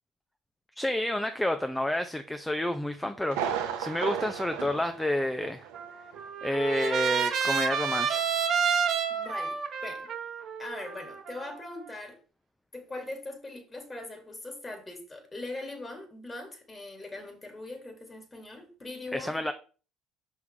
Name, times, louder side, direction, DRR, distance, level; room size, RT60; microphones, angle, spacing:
voice 1, 0.8-5.7 6.4-8.3 19.1-19.5, left 1 dB, 10° left, 0.6 m, -30 dB
Thunder, 3.3-5.8 6.1-6.2 6.8-6.9, right 8 dB, 75° right, 0.9 m, -34 dB
Trumpet, 5.7-11.9, right 6 dB, 55° right, 1.1 m, -30 dB
voice 2, 9.1-10.1 10.6-12.2 12.7-19.4, left 2 dB, 25° left, 2.3 m, -41 dB
5.9 x 5.6 x 3.3 m
hypercardioid pair, 65°, 0 cm